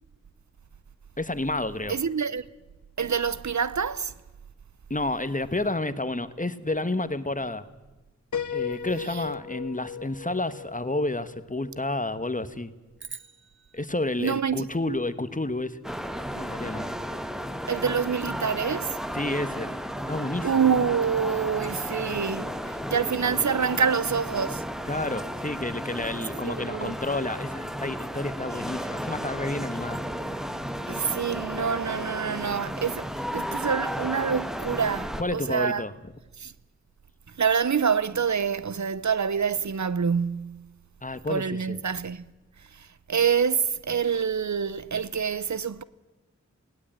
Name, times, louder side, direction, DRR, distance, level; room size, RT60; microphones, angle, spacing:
voice 1, 1.2-2.0 4.9-7.7 8.5-12.7 13.7-15.8 16.3-16.9 19.1-19.7 20.1-20.5 24.9-30.0 35.2-35.9 41.0-41.8, left 2 dB, 25° left, 1.2 m, -30 dB
voice 2, 1.9-2.4 3.0-4.1 9.1-9.2 14.2-14.7 17.7-19.0 20.4-24.7 26.4-26.9 30.9-33.1 33.3-35.8 36.4-36.5 37.4-40.7 41.3-42.3 42.7-45.8, right 6 dB, 70° right, 0.7 m, -26 dB
Piano, 8.3-12.1, left 7 dB, 85° left, 0.8 m, -36 dB
sound 1, 13.0-15.4, right 4 dB, 40° right, 0.8 m, -47 dB
sound 2, 15.8-35.2, equal, ahead, 1.2 m, -33 dB
20.0 x 17.5 x 8.8 m
wide cardioid pair, 60°, 29 cm